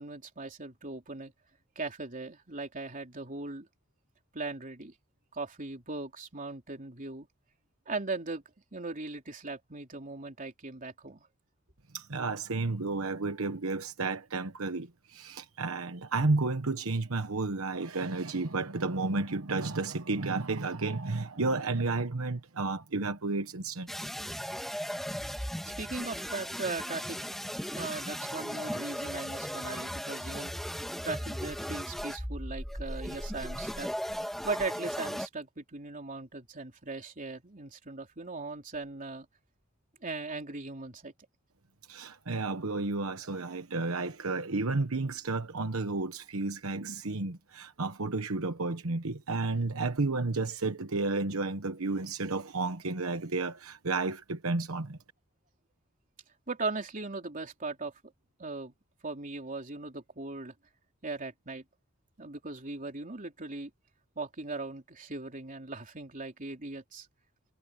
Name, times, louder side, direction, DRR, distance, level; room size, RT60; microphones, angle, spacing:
voice 1, 0.0-1.3 1.8-3.7 4.3-4.9 5.3-7.3 7.9-8.4 8.7-11.3 25.8-27.2 27.8-30.5 31.0-33.9 34.4-39.3 40.0-41.1 56.5-57.9 58.4-58.7 59.0-60.5 61.0-61.6 62.2-63.7 64.2-67.1, right 3 dB, 40° right, 3.5 m, -38 dB
voice 2, 11.9-23.9 41.9-55.0, right 3 dB, 75° right, 1.2 m, -32 dB
sound 1, 23.9-35.3, equal, ahead, 1.5 m, -37 dB
head